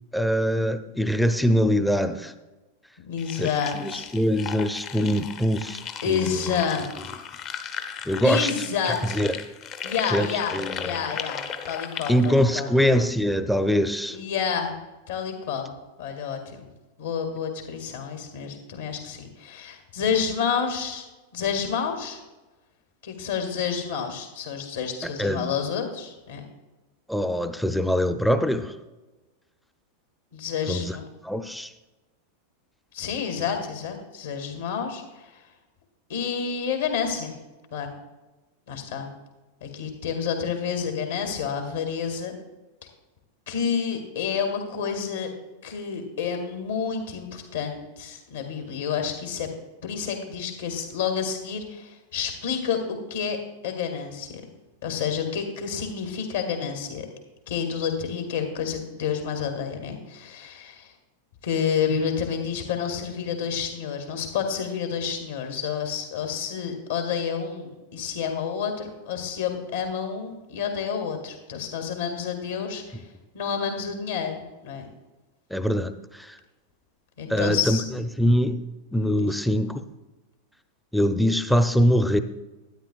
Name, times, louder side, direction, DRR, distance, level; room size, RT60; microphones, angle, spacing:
voice 1, 0.1-2.3 3.4-6.6 8.1-8.5 8.9-9.3 10.1-11.1 12.1-14.2 25.0-25.5 27.1-28.7 30.7-31.0 31.2-31.7 75.5-76.4 77.3-78.6 78.9-79.8 80.9-82.2, equal, ahead, 10 dB, 0.6 m, -23 dB
voice 2, 3.0-4.1 6.0-6.9 8.2-9.2 9.8-12.7 14.1-14.7 15.1-15.7 16.0-16.7 17.0-21.1 21.3-22.2 23.0-26.4 30.3-31.0 32.9-35.4 36.1-37.3 37.7-37.9 38.7-39.1 39.6-42.3 43.5-45.3 45.6-49.5 49.8-53.4 53.6-54.3 54.8-57.1 57.5-60.9 61.4-73.0 73.3-74.9 77.2-77.8 79.2-79.3, left 7 dB, 65° left, 4 dB, 2.1 m, -29 dB
sound 1, 3.2-12.3, left 7 dB, 35° left, 0.8 m, -36 dB
12.5 x 10.0 x 2.4 m, 1.1 s
figure-of-eight pair, 90°, 0 cm